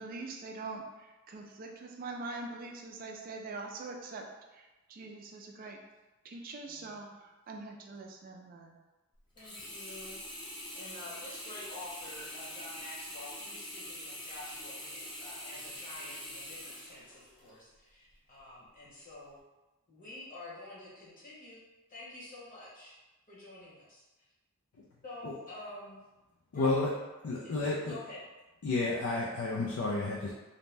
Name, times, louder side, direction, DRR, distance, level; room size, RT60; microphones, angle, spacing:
voice 1, 0.0-4.2 4.5-5.8 6.2-8.8, right 3 dB, 40° right, 2 dB, 0.3 m, -43 dB
voice 2, 6.7-7.2 9.3-10.2 10.7-19.4 19.9-21.6 21.9-23.0 23.3-24.0 25.0-26.0 26.5-26.9 27.4-28.2 28.7-29.0, left 2 dB, 40° left, -8 dB, 1.0 m, -48 dB
Sink (filling or washing), 9.4-17.6 18.1-18.2, left 1 dB, 20° left, 0.6 m, -44 dB
voice 3, 26.5-26.9 27.2-28.0 28.6-30.3, left 3 dB, 70° left, -4 dB, 0.4 m, -31 dB
2.6 x 2.1 x 3.2 m, 1.1 s
head